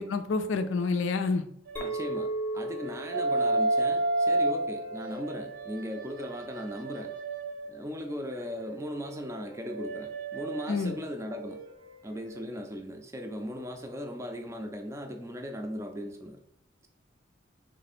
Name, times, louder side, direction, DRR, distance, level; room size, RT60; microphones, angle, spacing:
voice 1, 0.0-1.4 10.7-10.9, left 4 dB, 90° left, 9 dB, 0.4 m, -28 dB
sound 1, 1.7-2.2 2.7-7.8 8.3-11.9 12.2-12.4, right 2 dB, 75° right, 0.8 m, -32 dB
Chink clink, 1.8-6.2, right 2 dB, 10° left, 0.8 m, -38 dB
voice 2, 1.8-2.3 2.5-7.1 7.7-11.6 12.0-16.4, equal, 15° right, 3 dB, 0.4 m, -38 dB
3.5 x 3.2 x 4.1 m, 0.71 s
head